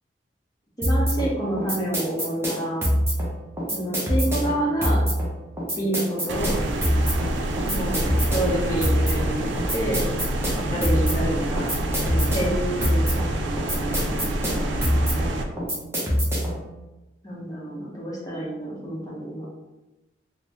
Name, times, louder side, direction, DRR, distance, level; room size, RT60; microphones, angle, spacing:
voice 1, 0.8-2.8 3.7-5.0 5.8-6.6 7.7-8.0 8.3-10.0 10.5-11.7 12.0-14.7 17.2-19.5, right 1 dB, 20° left, -6 dB, 0.8 m, -28 dB
sound 1, 0.8-16.7, equal, 15° right, 0.7 m, -25 dB
sound 2, 6.3-15.4, right 1 dB, 85° right, 0.4 m, -27 dB
3.6 x 2.1 x 2.9 m, 1.1 s
head